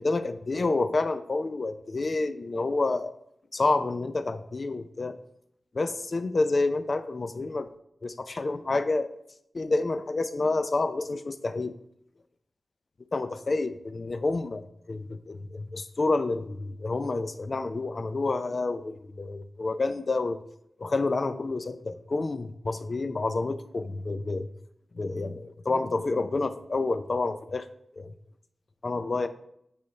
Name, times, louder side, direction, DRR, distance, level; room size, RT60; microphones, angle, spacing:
voice 1, 0.0-3.2 3.5-5.2 5.7-7.7 8.0-9.1 9.5-11.7 13.1-20.4 20.8-24.5 24.9-27.7 27.9-28.1 28.8-29.3, left 3 dB, 50° left, 11 dB, 0.5 m, -29 dB
9.0 x 3.6 x 5.4 m, 0.75 s
wide cardioid pair, 75°, 0 cm